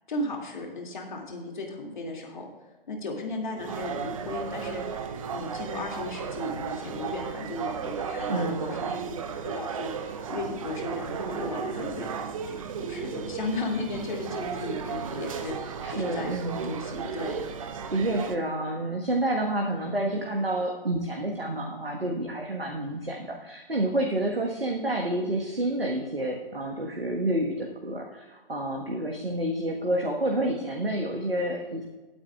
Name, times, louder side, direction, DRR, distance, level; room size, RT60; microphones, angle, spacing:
voice 1, 0.1-2.5 2.9-5.0 5.3-12.1 12.5-16.4 16.6-17.4, left 2 dB, 55° left, 1 dB, 2.5 m, -35 dB
sound 1, 3.6-18.4, right 6 dB, 35° right, 0.7 m, -35 dB
voice 2, 8.3-8.9 15.8-16.7 17.9-31.8, right 1 dB, 80° right, 1 dB, 1.5 m, -29 dB
19.0 x 8.6 x 2.4 m, 1.2 s
figure-of-eight pair, 130°, 29 cm